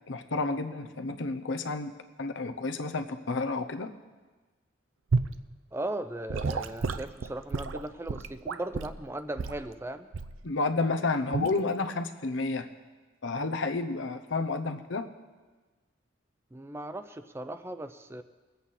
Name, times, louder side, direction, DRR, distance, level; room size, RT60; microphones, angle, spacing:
voice 1, 0.1-1.9 2.2-3.9 10.4-12.7 13.2-15.1, left 3 dB, 75° left, 8 dB, 0.8 m, -30 dB
Gurgling / Sink (filling or washing) / Liquid, 5.1-5.4 6.3-9.0 9.4-9.6 10.1-10.4 11.3-11.6, right 4 dB, 85° right, 0.5 m, -31 dB
voice 2, 5.7-10.1 16.5-18.2, right 1 dB, 15° right, 10 dB, 0.4 m, -37 dB
21.0 x 8.1 x 4.2 m, 1.3 s
head